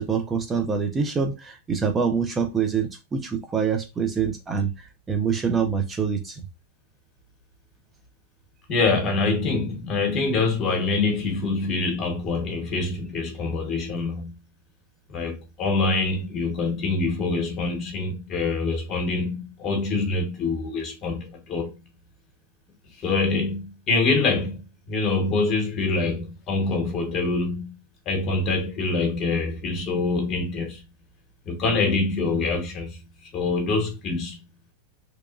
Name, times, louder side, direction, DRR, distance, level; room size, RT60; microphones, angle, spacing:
voice 1, 0.0-6.4, right 6 dB, 20° right, 0.5 m, -25 dB
voice 2, 8.7-14.3 15.1-21.8 23.0-24.6 24.9-27.8 28.1-30.8 31.5-33.0 33.3-34.4, left 3 dB, 35° left, 1.1 m, -25 dB
2.9 x 2.2 x 2.4 m
hypercardioid pair, 120°, 0 cm